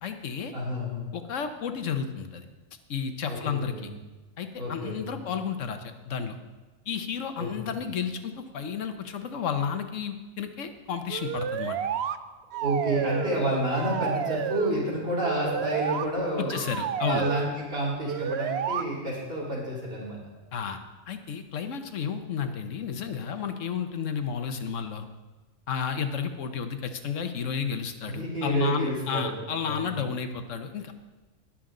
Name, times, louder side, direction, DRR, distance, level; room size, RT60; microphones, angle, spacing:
voice 1, 0.0-0.5 1.1-2.4 2.9-3.9 4.4-6.4 6.9-11.8 16.4-17.3 20.5-20.8 21.1-25.1 25.7-30.9, left 7 dB, 70° left, 7 dB, 1.3 m, -32 dB
voice 2, 0.5-1.1 3.3-3.9 4.6-5.2 7.4-7.5 12.5-16.6 17.0-20.2 28.1-29.3 29.6-29.9, right 1 dB, 45° right, -6 dB, 4.2 m, -29 dB
sound 1, 11.1-12.2 12.5-13.4 13.7-14.8 15.2-16.0 16.5-17.5 18.1-18.8, right 9 dB, 65° right, 0.7 m, -31 dB
20.0 x 7.3 x 3.8 m, 1.2 s
omnidirectional pair, 1.4 m